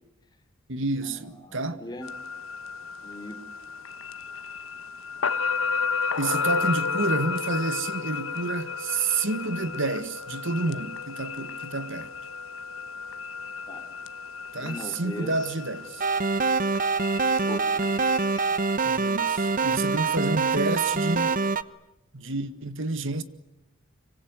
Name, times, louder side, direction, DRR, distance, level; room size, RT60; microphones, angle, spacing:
voice 1, 0.7-1.8 6.2-12.1 14.5-16.0 18.8-21.4 22.1-23.2, right 3 dB, 70° right, 1.8 m, -29 dB
voice 2, 1.4-2.1 3.0-3.4 13.7-13.8 14.6-15.3 17.5-18.8 19.9-20.1, left 1 dB, 20° left, 3.8 m, -40 dB
sound 1, 2.0-20.0, left 5 dB, 90° left, 1.2 m, -33 dB
sound 2, 16.0-21.6, right 4 dB, 45° right, 1.0 m, -25 dB
25.5 x 24.5 x 9.6 m
head